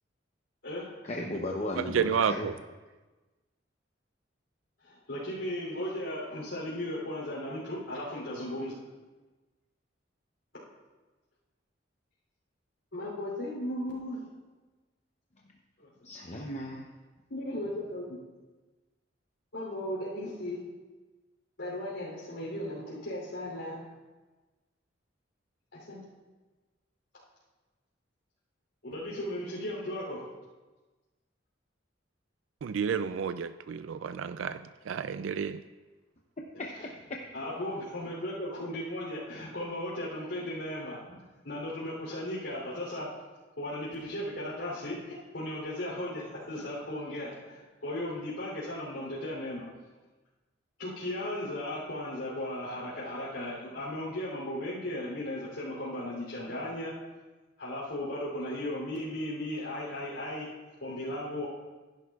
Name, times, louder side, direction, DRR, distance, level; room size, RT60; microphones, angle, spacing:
voice 1, 1.0-2.5 16.0-16.9 36.4-37.2, left 1 dB, 40° left, 0.7 m, -36 dB
voice 2, 1.8-2.6 32.6-35.6, right 7 dB, 85° right, 0.4 m, -31 dB
voice 3, 4.8-8.8 12.9-14.2 15.8-15.9 17.3-18.2 19.5-20.6 21.6-23.8 25.7-26.0 28.8-30.2 37.3-41.2 41.4-43.1 43.6-45.0 45.3-49.6 50.8-56.9 57.6-60.5 60.8-61.5, left 1 dB, 80° left, 3.2 m, -36 dB
15.5 x 11.0 x 2.4 m
head